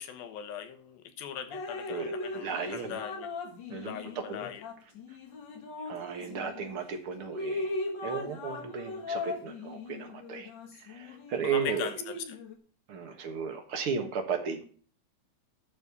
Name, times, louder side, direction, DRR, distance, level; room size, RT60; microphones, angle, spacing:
voice 1, 0.0-3.3 3.8-4.6 11.4-12.4, left 9 dB, 80° left, 9 dB, 3.0 m, -40 dB
Drip, 1.5-6.8 7.2-12.5, left 2 dB, 50° left, 1.5 m, -39 dB
voice 2, 1.9-3.0 3.7-4.5 5.9-7.7 8.0-10.5 10.9-11.9 12.9-14.6, right 6 dB, 55° right, 6 dB, 1.6 m, -35 dB
12.5 x 4.3 x 8.2 m, 0.43 s
omnidirectional pair, 4.2 m